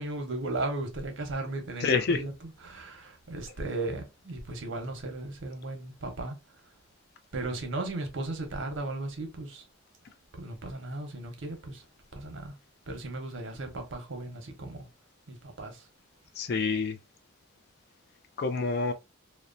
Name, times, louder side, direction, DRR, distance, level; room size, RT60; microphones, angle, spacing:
voice 1, 0.0-2.3 2.6-6.4 7.3-9.6 10.4-11.8 12.1-12.5 12.9-14.9 15.3-15.8, right 2 dB, 65° right, 0.7 m, -36 dB
voice 2, 1.8-2.2 16.4-17.0 18.4-18.9, left 4 dB, 50° left, 0.3 m, -27 dB
2.8 x 2.1 x 2.5 m
head